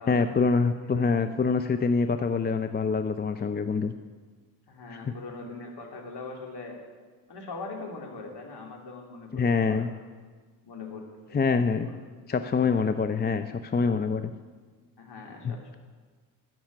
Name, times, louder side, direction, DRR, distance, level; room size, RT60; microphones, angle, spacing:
voice 1, 0.1-3.9 9.3-9.9 11.3-11.9 12.3-14.3 15.4-15.5, left 5 dB, 20° left, 9 dB, 0.6 m, -25 dB
voice 2, 4.7-6.8 7.3-9.9 10.6-11.4 11.8-12.1 15.0-15.8, left 3 dB, 50° left, 1 dB, 3.1 m, -41 dB
13.0 x 6.2 x 9.6 m, 1.4 s
hypercardioid pair, 60°, 49 cm